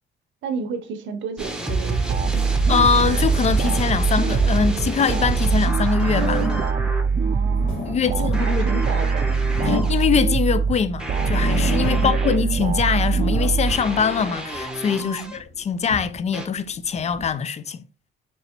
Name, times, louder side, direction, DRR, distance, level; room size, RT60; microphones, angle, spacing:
voice 1, 0.4-2.5 7.2-9.3 11.8-12.2 15.0-15.3, right 5 dB, 70° right, 0.8 m, -33 dB
sound 1, 1.4-7.0 8.3-10.0 11.0-12.4 13.7-15.4 16.3-16.5, right 2 dB, 5° right, 0.8 m, -29 dB
sound 2, 2.1-14.3, right 5 dB, 40° right, 0.4 m, -22 dB
voice 2, 2.7-6.5 7.9-8.6 9.6-17.8, left 6 dB, 35° left, 0.4 m, -23 dB
sound 3, 6.0-6.8 7.4-10.6 11.0-12.4 12.7-14.6 15.2-17.3, left 3 dB, 75° left, 1.6 m, -31 dB
4.6 x 2.9 x 2.8 m
cardioid pair, 90°, 20 cm